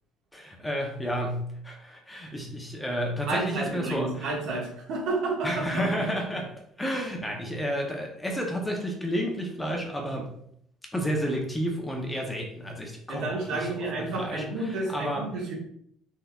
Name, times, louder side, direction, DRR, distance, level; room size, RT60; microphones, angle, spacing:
voice 1, 0.3-4.3 5.4-10.3 10.9-13.7 14.0-15.3, equal, 5° left, 0 dB, 0.6 m, -31 dB
voice 2, 3.3-5.5 13.1-15.5, right 2 dB, 65° right, -2 dB, 1.5 m, -30 dB
4.1 x 4.0 x 2.3 m, 0.69 s
cardioid pair, 150°, 0 cm